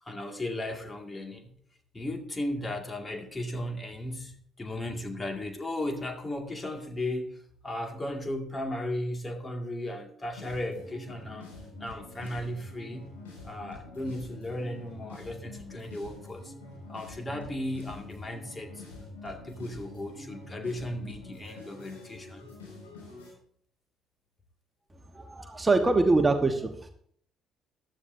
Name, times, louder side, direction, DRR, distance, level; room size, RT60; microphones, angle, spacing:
voice 1, 0.0-1.5 1.9-11.5 11.8-13.1 13.4-16.5 16.9-18.8 19.2-22.5, left 1 dB, 25° left, 4 dB, 2.1 m, -36 dB
sound 1, 10.4-23.3, left 2 dB, 85° left, 5.7 m, -46 dB
voice 2, 25.1-26.9, right 3 dB, 20° right, 5 dB, 1.3 m, -24 dB
15.0 x 11.5 x 2.7 m, 0.64 s
hypercardioid pair, 50°, 0 cm